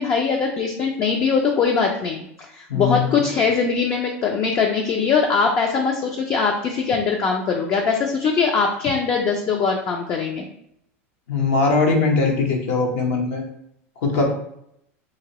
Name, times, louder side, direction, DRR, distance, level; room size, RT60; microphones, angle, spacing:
voice 1, 0.0-2.2 2.5-10.4, left 5 dB, 35° left, 1 dB, 0.5 m, -21 dB
voice 2, 2.7-3.2 11.3-13.4 14.0-14.3, left 4 dB, 75° left, 1 dB, 0.9 m, -20 dB
2.9 x 2.9 x 2.9 m, 0.75 s
hypercardioid pair, 100°, 7 cm